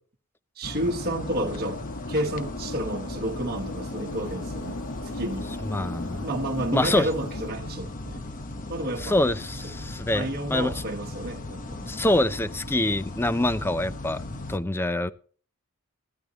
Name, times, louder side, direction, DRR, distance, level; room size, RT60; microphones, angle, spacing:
sound 1, 0.6-14.6, left 2 dB, 35° left, 1.0 m, -37 dB
voice 1, 0.6-1.8 2.1-4.8 5.1-5.5 6.2-8.2 8.7-9.2 10.1-12.0, right 1 dB, 45° right, 1.3 m, -30 dB
sound 2, 0.9-7.5, left 2 dB, 65° left, 1.3 m, -38 dB
voice 2, 5.6-6.2 6.7-7.1 9.0-10.7 11.9-14.2 14.5-15.1, left 1 dB, 10° left, 0.5 m, -25 dB
15.5 x 12.5 x 2.9 m
head